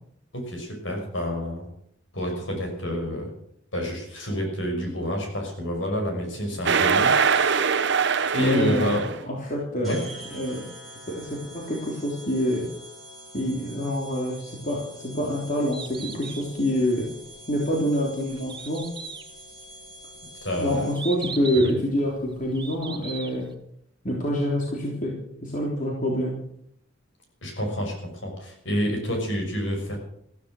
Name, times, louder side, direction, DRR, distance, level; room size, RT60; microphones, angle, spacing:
voice 1, 0.3-1.7 2.1-3.3 3.7-7.9 8.3-9.1 9.8-10.0 20.4-20.9 21.6-21.7 27.4-30.0, equal, 65° left, 2 dB, 6.0 m, -28 dB
sound 1, 6.7-9.2, right 6 dB, 60° right, 0.9 m, -22 dB
voice 2, 8.4-9.0 9.3-10.7 11.1-12.7 13.3-17.1 17.5-18.9 20.6-23.5 24.0-25.1 25.4-26.4, equal, 40° left, -2 dB, 3.4 m, -26 dB
sound 2, 9.8-21.2, right 1 dB, ahead, 7.9 m, -45 dB
Bird, 15.5-23.5, right 5 dB, 25° right, 1.5 m, -40 dB
14.5 x 14.0 x 6.3 m, 0.68 s
head